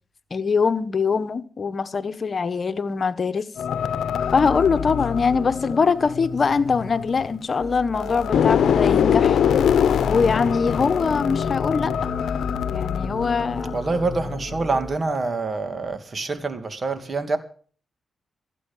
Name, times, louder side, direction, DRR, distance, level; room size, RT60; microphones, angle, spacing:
voice 1, 0.3-3.4 4.3-9.4 10.0-12.1 12.7-13.7, left 5 dB, 50° left, 1.2 m, -22 dB
sound 1, 3.6-7.6 7.9-14.7 15.0-15.3, left 8 dB, 80° left, 0.9 m, -24 dB
sound 2, 7.6-15.0, right 1 dB, 15° right, 1.7 m, -37 dB
voice 2, 13.7-17.4, right 3 dB, 45° right, 2.6 m, -26 dB
16.5 x 8.6 x 7.4 m
cardioid pair, 65°, 0 cm